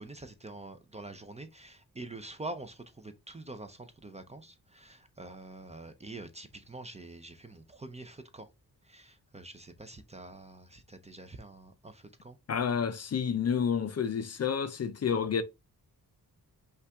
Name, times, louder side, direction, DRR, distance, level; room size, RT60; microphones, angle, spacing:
voice 1, 0.0-8.5 8.8-12.4, right 2 dB, 20° right, 0.5 m, -46 dB
voice 2, 12.5-15.4, left 7 dB, 45° left, 0.5 m, -29 dB
5.5 x 2.5 x 3.4 m
wide cardioid pair, 105°, 37 cm